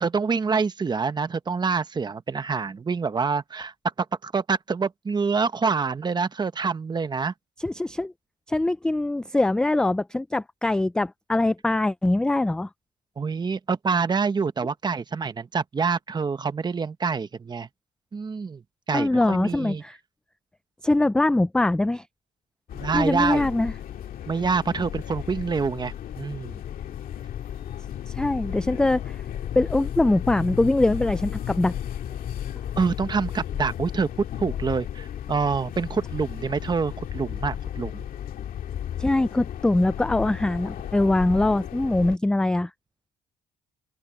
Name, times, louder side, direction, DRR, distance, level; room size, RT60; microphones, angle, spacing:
voice 1, 0.0-3.7 4.0-7.3 13.2-17.7 18.1-18.6 18.9-19.8 22.7-23.5 24.3-26.6 32.8-34.1 34.4-38.0, right 5 dB, 25° right, 1.1 m, -26 dB
voice 2, 7.6-8.1 8.5-12.7 18.9-20.0 20.8-22.0 22.9-23.7 28.1-29.2 29.6-31.7 39.0-42.7, left 2 dB, 5° left, 0.3 m, -23 dB
sound 1, 22.7-42.2, left 10 dB, 60° left, 2.1 m, -34 dB
open air
cardioid pair, 110°, 17 cm